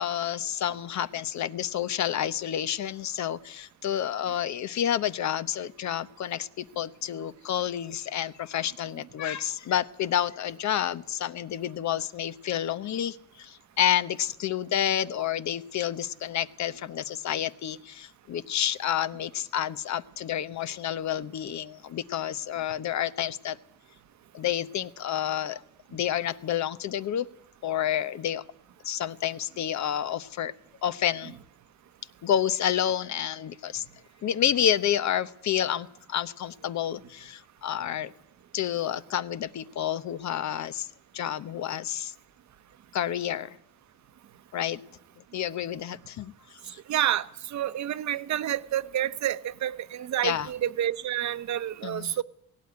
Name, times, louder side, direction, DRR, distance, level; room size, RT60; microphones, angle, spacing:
voice 1, 0.0-23.6 24.3-25.6 25.9-27.3 27.6-28.4 28.8-30.5 30.8-31.3 32.2-33.8 34.2-38.1 38.5-40.9 41.1-42.1 42.9-43.6 44.5-44.8 45.3-46.8 50.2-50.5 51.8-52.2, left 10 dB, 65° left, 1.0 m, -29 dB
voice 2, 46.9-52.2, right 11 dB, 65° right, 1.0 m, -29 dB
17.5 x 17.0 x 9.6 m
cardioid pair, 90°, 30 cm